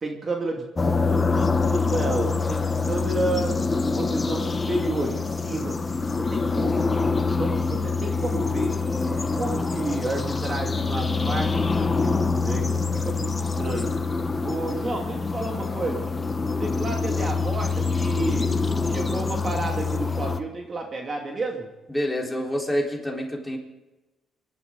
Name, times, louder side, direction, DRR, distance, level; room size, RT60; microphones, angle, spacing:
voice 1, 0.0-3.5 3.9-6.9 7.4-8.8 9.1-13.9 14.4-16.1 16.5-18.5 18.8-21.7, right 2 dB, 35° right, 2 dB, 2.3 m, -31 dB
sound 1, 0.8-20.4, left 4 dB, 25° left, 1.0 m, -25 dB
voice 2, 21.9-23.6, equal, 10° left, -1 dB, 4.1 m, -27 dB
24.5 x 12.0 x 3.9 m, 1.1 s
cardioid pair, 90°, 0 cm